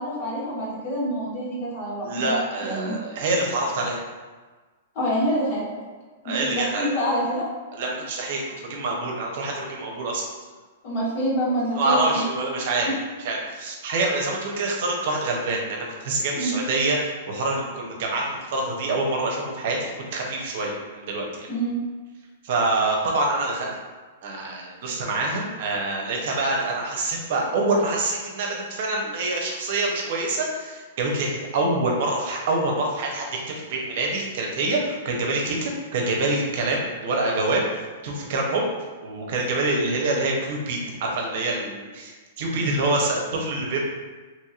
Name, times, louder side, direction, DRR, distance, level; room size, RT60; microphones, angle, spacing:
voice 1, 0.0-2.9 4.9-5.6 6.2-7.5 10.8-12.2 16.3-16.6 21.5-21.8, equal, 55° left, -7 dB, 1.5 m, -26 dB
voice 2, 2.0-4.0 6.2-6.9 7.7-10.2 11.7-12.9 13.2-21.5 22.4-23.7 24.2-37.7 38.0-38.6 39.0-43.8, right 2 dB, 60° right, -1 dB, 0.7 m, -26 dB
2.9 x 2.8 x 2.4 m, 1.3 s
hypercardioid pair, 125°, 0 cm